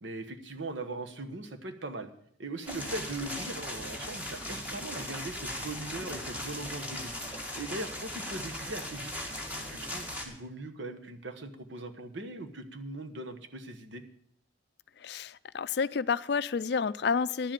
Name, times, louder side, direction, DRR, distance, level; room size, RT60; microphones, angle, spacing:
voice 1, 0.0-2.1 2.4-7.1 7.5-9.1 9.7-14.0, right 2 dB, 80° right, 7 dB, 1.2 m, -40 dB
sound 1, 2.7-10.2, left 1 dB, 10° right, 1.9 m, -38 dB
voice 2, 15.0-17.5, left 5 dB, 60° left, 16 dB, 0.4 m, -30 dB
10.5 x 7.5 x 9.0 m, 0.68 s
head